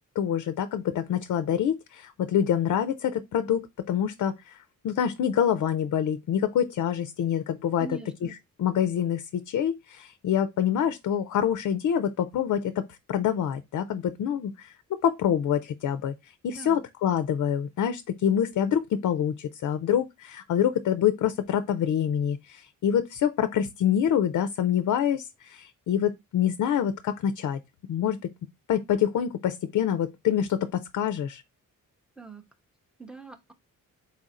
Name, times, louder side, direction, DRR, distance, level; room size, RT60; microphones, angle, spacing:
voice 1, 0.2-16.1 16.4-27.6 27.9-28.2 28.7-31.4, left 9 dB, 65° left, 0.5 m, -26 dB
voice 2, 7.8-8.3 16.5-16.8 32.2-32.4 33.0-33.5, right 4 dB, 5° right, 0.5 m, -42 dB
4.2 x 2.5 x 4.0 m
wide cardioid pair, 150°, 33 cm